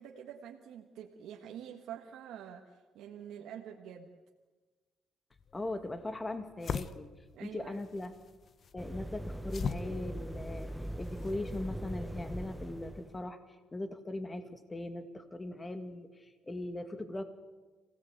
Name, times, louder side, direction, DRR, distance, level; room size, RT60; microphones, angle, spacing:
voice 1, 0.0-4.1 7.3-7.8, right 9 dB, 85° right, 1 dB, 1.6 m, -47 dB
sound 1, 5.3-11.7, left 6 dB, 50° left, 0.9 m, -42 dB
voice 2, 5.5-7.1 7.4-8.1 8.7-10.7 11.0-17.2, left 2 dB, 20° left, 8 dB, 2.2 m, -40 dB
sound 2, 8.8-13.2, right 1 dB, 5° right, 0.9 m, -41 dB
27.0 x 17.5 x 8.2 m, 1.3 s
cardioid pair, 90°, 0 cm